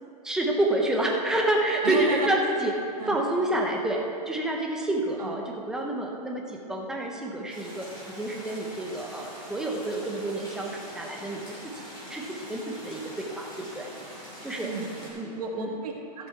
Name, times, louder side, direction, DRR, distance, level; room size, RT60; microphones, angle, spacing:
voice 1, 0.0-11.7 12.1-14.7 15.1-15.8, right 1 dB, 5° right, 0 dB, 0.6 m, -29 dB
voice 2, 1.8-2.3 3.0-3.2 5.2-5.3 14.6-16.3, right 5 dB, 65° right, 0 dB, 1.7 m, -32 dB
sound 1, 7.5-15.1, equal, 20° left, 3.0 m, -43 dB
15.0 x 6.9 x 4.5 m, 2.6 s
supercardioid pair, 170°, 21 cm